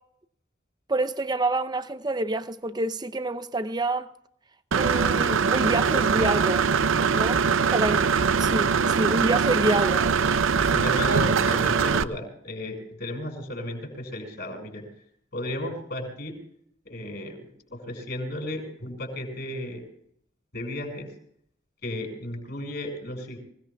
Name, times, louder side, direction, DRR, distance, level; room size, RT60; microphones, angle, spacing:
voice 1, 0.9-4.1 4.7-6.7 7.1-7.4 7.7-10.1, right 2 dB, 20° right, 0.6 m, -27 dB
Engine / Mechanisms, 4.7-12.0, right 6 dB, 90° right, 0.6 m, -22 dB
voice 2, 10.7-14.9 15.3-16.3 16.8-19.8 20.5-21.1 21.8-23.4, left 1 dB, 55° left, 6.0 m, -34 dB
26.0 x 17.5 x 2.3 m
head